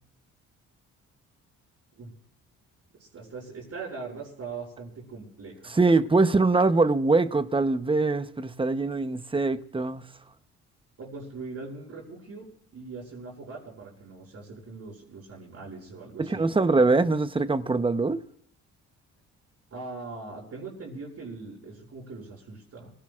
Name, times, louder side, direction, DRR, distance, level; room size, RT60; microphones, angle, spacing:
voice 1, 2.9-5.7 11.0-16.5 19.7-22.9, right 4 dB, 55° right, 6.3 m, -41 dB
voice 2, 5.7-10.1 16.2-18.2, right 3 dB, 15° right, 0.9 m, -23 dB
29.0 x 17.0 x 2.5 m
cardioid pair, 90°, 30 cm